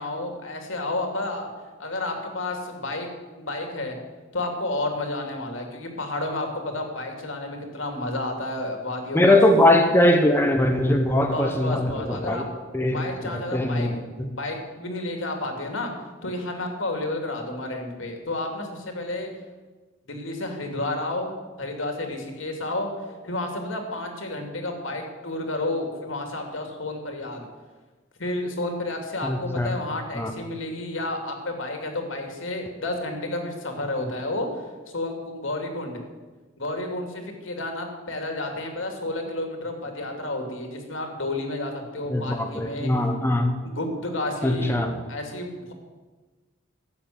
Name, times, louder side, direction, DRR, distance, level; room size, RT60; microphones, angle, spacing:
voice 1, 0.0-1.5 1.8-3.1 3.4-4.0 4.3-9.4 11.3-12.4 12.8-15.9 16.2-19.3 20.1-21.3 21.6-22.9 23.2-27.5 28.2-34.5 34.9-36.0 36.6-42.9 43.6-44.8 45.1-45.7, left 2 dB, 75° left, 3 dB, 2.7 m, -31 dB
voice 2, 9.1-12.4 12.7-13.9 14.2-14.3 29.2-29.7 30.1-30.3 42.1-43.5 44.4-45.0, left 1 dB, 10° left, 4 dB, 1.0 m, -21 dB
13.0 x 7.7 x 9.4 m, 1.3 s
head